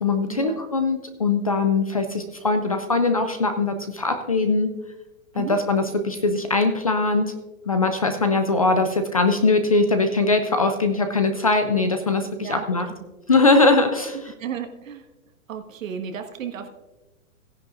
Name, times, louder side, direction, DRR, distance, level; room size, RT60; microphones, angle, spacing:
voice 1, 0.0-4.7 5.4-7.3 7.7-12.9 13.3-14.2, left 3 dB, 30° left, 8 dB, 0.4 m, -21 dB
voice 2, 12.4-12.9 14.3-15.1 15.5-16.7, right 7 dB, 70° right, 5 dB, 1.6 m, -34 dB
17.0 x 10.5 x 2.5 m, 1.1 s
hypercardioid pair, 165°, 41 cm